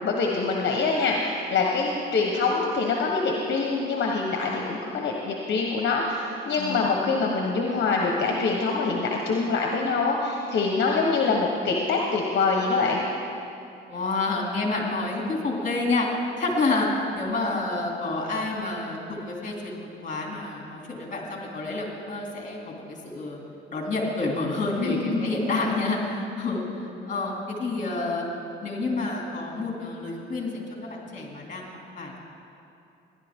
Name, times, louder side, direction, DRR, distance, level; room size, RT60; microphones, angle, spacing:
voice 1, 0.0-13.0 24.8-25.3, left 4 dB, 60° left, 0 dB, 1.2 m, -25 dB
voice 2, 13.9-23.4 23.7-28.2 28.6-32.2, left 3 dB, 40° left, 0 dB, 2.7 m, -29 dB
17.0 x 11.0 x 3.6 m, 2.7 s
cardioid pair, 90°, 20 cm